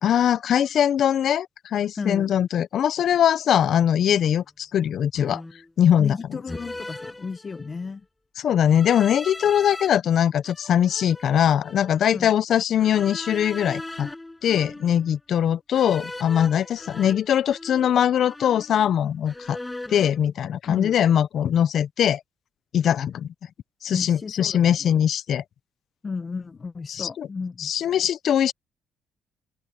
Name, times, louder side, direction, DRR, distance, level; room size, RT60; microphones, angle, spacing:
voice 1, 0.0-5.4 5.8-6.2 8.4-14.1 14.4-19.6 19.9-22.2 22.7-23.3 23.8-25.4 26.9-27.3 27.6-28.5, left 9 dB, 65° left, 0.5 m, -21 dB
voice 2, 1.9-2.3 6.0-8.0 12.1-12.3 20.7-20.9 23.9-24.7 26.0-27.7, left 4 dB, 35° left, 1.0 m, -33 dB
sound 1, 4.1-4.3 5.1-5.7 6.5-7.9 8.7-9.9 10.4-12.0 12.8-15.1 15.7-18.0 18.2-19.0 19.3-20.2, left 2 dB, 15° left, 6.2 m, -39 dB
open air
cardioid pair, 90°, 0 cm